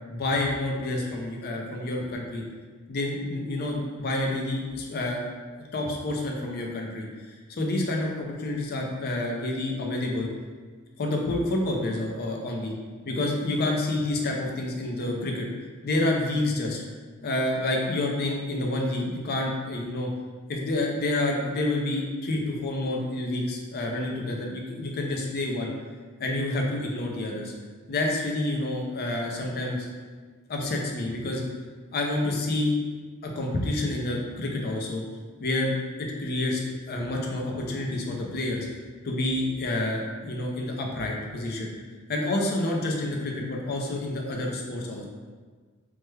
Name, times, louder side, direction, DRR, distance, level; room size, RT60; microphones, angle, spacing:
voice 1, 0.1-2.4 2.9-5.2 5.7-7.1 7.5-10.3 11.0-12.7 13.0-15.5 15.8-16.8 17.2-20.1 20.5-25.7 26.2-27.5 27.9-29.8 30.5-31.4 31.9-32.7 33.2-35.0 35.4-35.7 36.2-38.7 39.0-41.7 42.1-45.0, left 2 dB, 45° left, 0 dB, 0.5 m, -28 dB
3.2 x 2.1 x 3.2 m, 1.5 s
head